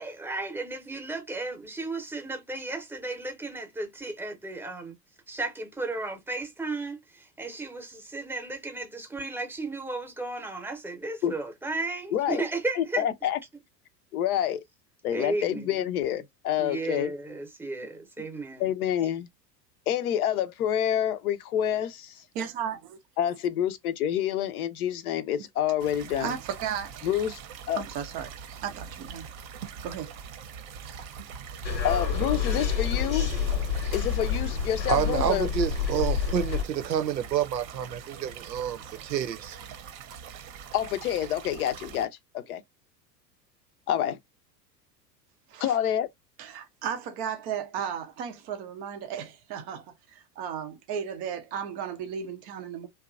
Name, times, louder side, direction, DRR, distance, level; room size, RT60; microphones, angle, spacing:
voice 1, 0.0-5.0 5.3-13.3 15.1-15.8 16.6-18.7, right 2 dB, 5° right, 0.7 m, -34 dB
voice 2, 12.1-12.4 12.8-13.4 14.1-14.6 15.0-17.1 18.6-19.3 19.9-22.2 23.2-26.3 27.0-27.4 27.7-27.8 31.8-33.3 33.9-35.5 40.7-42.6 43.9-44.2 45.6-46.1, left 10 dB, 60° left, 0.7 m, -28 dB
voice 3, 22.3-23.0 26.2-27.1 27.7-28.3 28.6-29.3 29.8-30.1 45.5-45.8 46.4-52.9, right 8 dB, 20° right, 0.3 m, -35 dB
sound 1, 25.8-42.1, right 7 dB, 40° right, 0.7 m, -43 dB
sound 2, 31.6-36.6, left 6 dB, 85° left, 1.2 m, -28 dB
voice 4, 34.9-39.6, right 9 dB, 80° right, 0.7 m, -29 dB
2.9 x 2.3 x 2.4 m
figure-of-eight pair, 85°, 50 cm